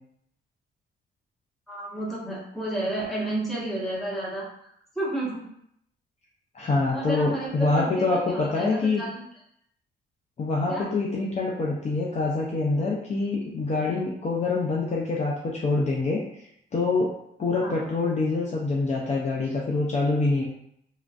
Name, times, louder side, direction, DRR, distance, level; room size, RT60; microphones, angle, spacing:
voice 1, 1.7-4.7 4.9-5.5 6.9-9.2 10.7-10.8 17.6-17.8, right 1 dB, ahead, -7 dB, 1.3 m, -31 dB
voice 2, 6.5-9.0 10.4-16.2 16.7-17.1 17.4-20.4, left 3 dB, 35° left, -3 dB, 0.5 m, -25 dB
3.0 x 2.5 x 2.4 m, 0.73 s
cardioid pair, 90°, 20 cm